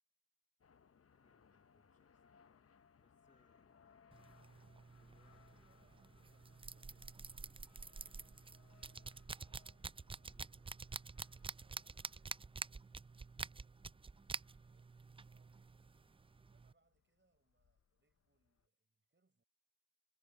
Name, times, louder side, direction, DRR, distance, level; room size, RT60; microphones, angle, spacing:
sound 1, 0.6-18.7, left 7 dB, 50° left, 0.7 m, -71 dB
voice 1, 1.1-4.0 5.0-9.1 10.2-10.7, left 2 dB, 25° left, 3.6 m, -77 dB
sound 2, 4.1-16.7, right 4 dB, 20° right, 0.3 m, -49 dB
voice 2, 5.7-8.1 8.5-9.4 11.1-14.1 14.5-19.4, right 3 dB, 35° right, 6.1 m, -81 dB
cardioid pair, 65°, 31 cm